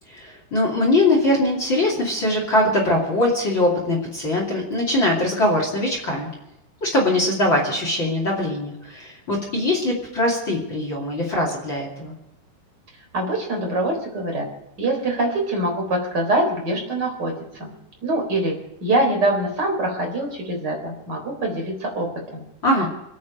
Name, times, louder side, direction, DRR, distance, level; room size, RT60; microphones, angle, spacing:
voice 1, 0.1-6.3 6.8-12.2 22.6-22.9, left 1 dB, 30° left, 0 dB, 2.6 m, -22 dB
voice 2, 13.1-14.5 14.8-17.7 18.0-22.4, right 1 dB, 25° right, 0 dB, 3.9 m, -24 dB
26.0 x 9.5 x 5.2 m, 0.88 s
omnidirectional pair, 5.3 m